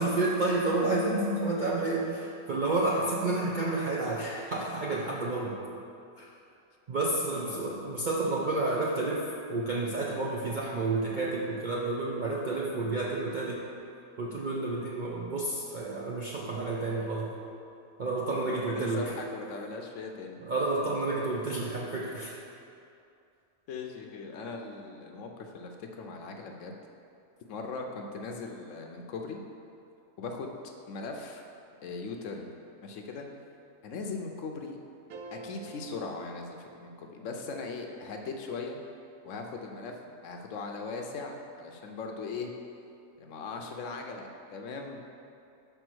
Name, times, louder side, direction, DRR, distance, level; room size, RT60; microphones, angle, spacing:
voice 1, 0.0-5.6 6.2-6.3 6.9-13.7 14.2-17.4 18.0-19.1 20.4-22.4, right 2 dB, 60° right, -3 dB, 0.5 m, -30 dB
voice 2, 7.3-7.9 18.4-20.4 23.7-26.8 27.5-29.4 30.2-30.6 30.9-31.4 31.8-32.5 32.8-33.3 33.8-34.8 35.3-38.8 39.2-39.9 40.2-42.5 43.2-45.0, left 4 dB, 70° left, 3 dB, 0.9 m, -39 dB
sound 1, 35.1-37.4, right 3 dB, 90° right, 1.1 m, -47 dB
5.4 x 4.5 x 6.1 m, 2.6 s
omnidirectional pair, 1.5 m